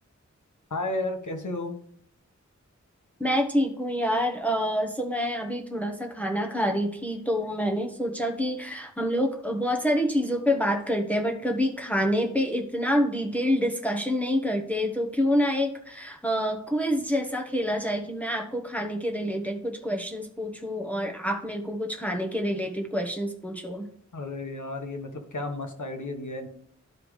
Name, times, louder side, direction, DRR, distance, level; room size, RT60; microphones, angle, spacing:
voice 1, 0.7-1.8 24.1-26.5, left 2 dB, 85° left, 5 dB, 1.3 m, -33 dB
voice 2, 3.2-23.9, equal, 5° left, 3 dB, 1.1 m, -27 dB
12.5 x 4.9 x 3.3 m, 0.64 s
wide cardioid pair, 60°, 30 cm